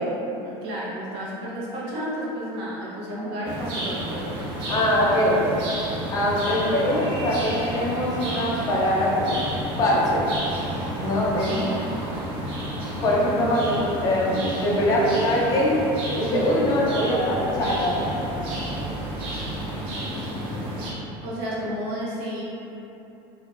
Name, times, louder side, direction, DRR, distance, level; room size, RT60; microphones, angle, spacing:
voice 1, 0.0-4.4 6.6-6.9 11.5-11.9 21.2-22.4, equal, 85° right, -6 dB, 0.8 m, -32 dB
sound 1, 3.4-20.9, right 1 dB, 45° right, 0.6 m, -31 dB
voice 2, 4.7-5.6 6.1-9.4 9.8-10.3 11.0-11.6 13.0-15.8 16.2-18.1, left 1 dB, 30° left, -4 dB, 0.5 m, -22 dB
3.4 x 2.1 x 2.4 m, 3.0 s
cardioid pair, 165°, 12 cm